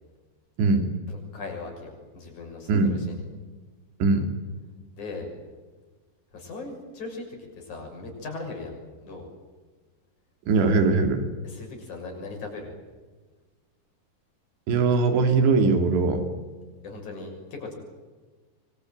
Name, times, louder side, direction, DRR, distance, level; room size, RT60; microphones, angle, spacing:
voice 1, 1.1-3.2 5.0-5.3 6.3-8.7 9.0-9.3 11.4-12.7 16.8-17.7, left 3 dB, 45° left, 2 dB, 7.8 m, -38 dB
voice 2, 4.0-4.3 10.5-11.2 14.7-16.2, right 4 dB, 80° right, 6 dB, 5.0 m, -21 dB
24.5 x 24.5 x 9.4 m, 1.3 s
omnidirectional pair, 5.0 m